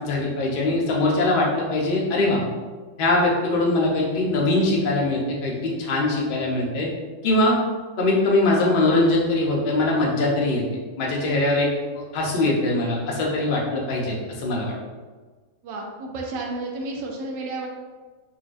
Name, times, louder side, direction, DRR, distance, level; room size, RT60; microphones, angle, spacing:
voice 1, 0.0-2.4 3.0-6.9 7.2-7.6 8.0-10.6 11.0-11.7 12.1-14.7, left 2 dB, 70° left, -3 dB, 0.5 m, -22 dB
voice 2, 15.6-17.7, right 2 dB, 85° right, 0 dB, 1.3 m, -31 dB
3.9 x 2.7 x 2.5 m, 1.4 s
omnidirectional pair, 1.9 m